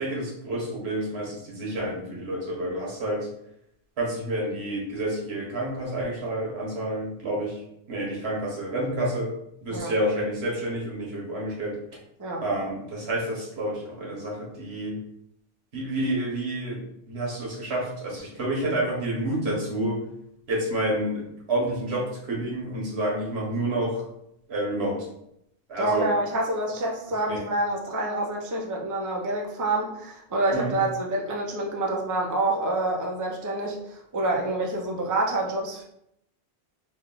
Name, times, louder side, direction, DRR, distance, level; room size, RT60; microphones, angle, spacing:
voice 1, 0.0-3.3 4.0-7.6 7.9-9.3 9.6-11.8 12.4-15.0 15.7-16.8 17.1-20.0 20.5-24.0 24.5-25.1 25.7-26.1 27.3-27.4 30.5-30.7, right 1 dB, 85° right, -2 dB, 1.3 m, -29 dB
voice 2, 25.8-35.8, right 2 dB, 30° right, 0 dB, 0.4 m, -27 dB
3.4 x 2.2 x 3.7 m, 0.78 s
omnidirectional pair, 1.1 m